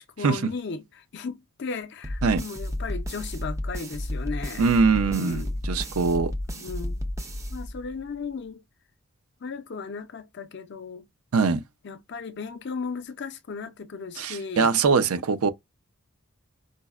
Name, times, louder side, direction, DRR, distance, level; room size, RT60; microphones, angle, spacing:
voice 1, 0.0-4.7 5.0-5.6 6.5-7.0 7.5-8.6 9.4-11.1 11.8-14.7, left 4 dB, 50° left, 0.4 m, -36 dB
sound 1, 2.0-8.1, left 1 dB, 15° right, 0.4 m, -32 dB
voice 2, 4.6-6.3 11.3-11.6 14.2-15.5, right 4 dB, 80° right, 0.5 m, -22 dB
5.1 x 2.1 x 2.3 m
head